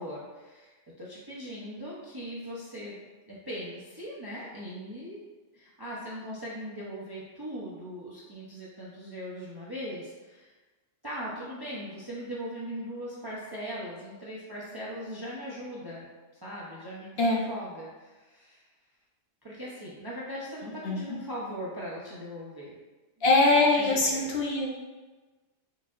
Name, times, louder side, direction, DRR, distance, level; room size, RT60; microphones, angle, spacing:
voice 1, 0.0-5.2 5.5-10.5 11.0-16.1 16.4-18.6 19.4-22.8 23.7-24.3, equal, 30° right, -7 dB, 0.4 m, -39 dB
voice 2, 20.6-21.0 23.2-24.7, left 2 dB, 60° left, -2 dB, 0.8 m, -23 dB
4.7 x 2.7 x 2.4 m, 1.2 s
omnidirectional pair, 1.2 m